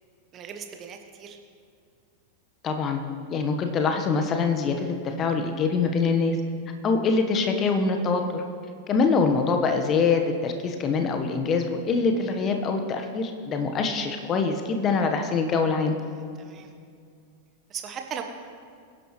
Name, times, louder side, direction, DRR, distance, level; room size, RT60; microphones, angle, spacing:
voice 1, 0.3-1.4 16.4-16.7 17.7-18.2, right 8 dB, 30° right, 4 dB, 1.3 m, -37 dB
voice 2, 2.6-3.0 3.3-6.4 6.8-8.4 8.9-16.0, left 4 dB, 30° left, 5 dB, 1.3 m, -24 dB
24.0 x 10.5 x 3.3 m, 2.2 s
figure-of-eight pair, 90°, 0 cm